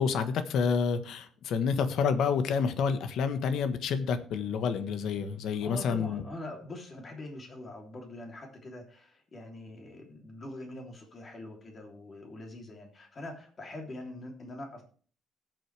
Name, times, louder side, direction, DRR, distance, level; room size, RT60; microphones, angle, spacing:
voice 1, 0.0-6.2, left 6 dB, 70° left, 10 dB, 1.3 m, -29 dB
voice 2, 5.5-14.8, left 1 dB, 30° left, 2 dB, 3.2 m, -43 dB
19.0 x 7.7 x 3.4 m, 0.41 s
cardioid pair, 150°, 0 cm